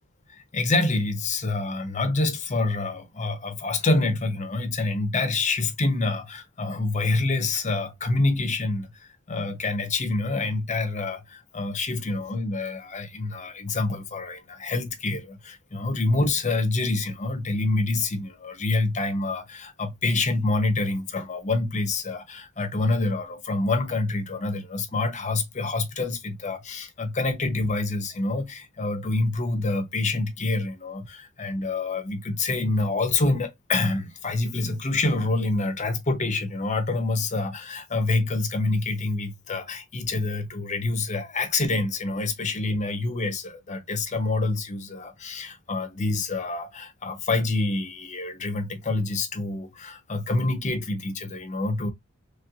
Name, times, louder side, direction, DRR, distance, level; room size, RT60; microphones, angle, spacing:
voice 1, 0.3-51.9, left 2 dB, 35° left, 0.7 m, -27 dB
3.2 x 3.0 x 2.5 m
head